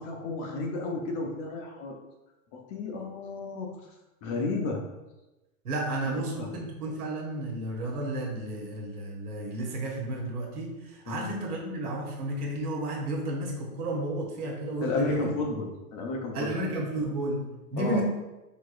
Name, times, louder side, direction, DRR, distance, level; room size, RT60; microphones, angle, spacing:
voice 1, 0.0-1.9 2.5-3.7 4.2-4.8 6.1-6.5 11.1-11.3 14.8-16.5 17.8-18.0, left 3 dB, 30° left, 1 dB, 0.6 m, -32 dB
voice 2, 5.6-15.3 16.3-18.0, right 1 dB, 80° right, -1 dB, 1.4 m, -32 dB
4.9 x 3.6 x 2.5 m, 1.0 s
hypercardioid pair, 135°, 45 cm